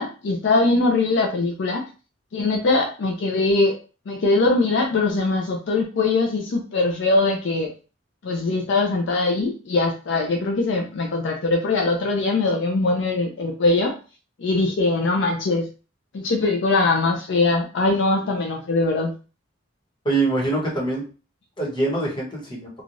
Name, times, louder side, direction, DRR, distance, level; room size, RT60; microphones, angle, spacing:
voice 1, 0.0-1.8 2.3-3.8 4.1-7.7 8.2-13.9 14.4-15.7 16.1-19.1, left 3 dB, 65° left, 2 dB, 0.5 m, -21 dB
voice 2, 20.0-21.1 21.6-22.7, right 2 dB, 25° left, -4 dB, 1.1 m, -24 dB
3.1 x 2.3 x 2.6 m, 0.34 s
head